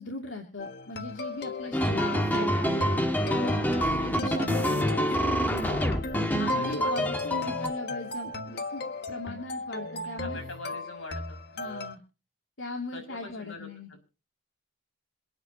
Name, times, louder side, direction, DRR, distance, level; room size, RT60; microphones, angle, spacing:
voice 1, 0.0-6.0 6.4-10.4 11.5-12.0 12.6-13.9, left 2 dB, 70° left, 2 dB, 2.7 m, -39 dB
sound 1, 0.6-11.9, left 2 dB, 50° left, 1.4 m, -36 dB
sound 2, 1.7-7.7, equal, 10° left, 1.4 m, -27 dB
voice 2, 1.9-2.4 3.8-4.5 6.5-6.9 10.2-11.4 12.9-14.0, left 2 dB, 85° left, 5 dB, 6.0 m, -42 dB
27.5 x 9.6 x 2.9 m, 0.31 s
head